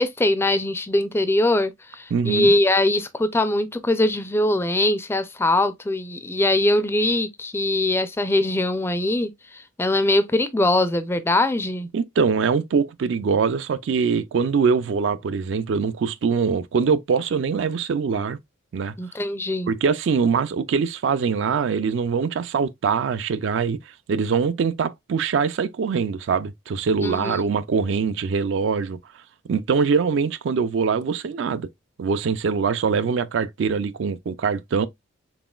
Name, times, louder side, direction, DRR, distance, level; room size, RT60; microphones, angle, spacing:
voice 1, 0.0-11.9 19.0-19.7 27.0-27.4, left 1 dB, 10° left, 0.3 m, -22 dB
voice 2, 2.1-2.5 11.9-18.4 18.7-18.9 19.7-23.8 24.1-29.0 29.5-31.7 32.0-34.9, right 5 dB, 60° right, 0.3 m, -23 dB
4.0 x 3.7 x 2.3 m
head